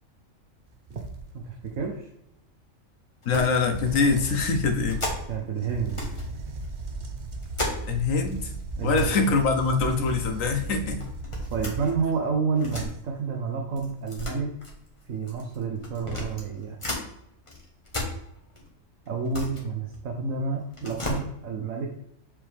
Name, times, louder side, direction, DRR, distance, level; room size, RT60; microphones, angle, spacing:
sound 1, 0.7-1.9 3.6-12.2, right 3 dB, 45° right, 0.9 m, -36 dB
voice 1, 1.3-2.1 5.3-6.0 8.8-9.3 11.5-14.5 15.1-16.8 19.1-21.9, right 5 dB, 75° right, 1 dB, 1.3 m, -29 dB
sound 2, 3.2-3.7 4.0-4.1 4.9-5.4 5.9-6.3 6.6-8.1 8.4-8.5 8.8-9.2 9.6-10.2 11.0-12.9 13.8-17.1 17.5-18.7 19.1-20.3 20.7-21.2, left 1 dB, 25° left, 1.6 m, -35 dB
voice 2, 3.3-5.0 7.8-8.5 8.8-11.1, left 4 dB, 80° left, 6 dB, 1.3 m, -24 dB
7.1 x 5.1 x 3.5 m, 0.78 s
omnidirectional pair, 1.4 m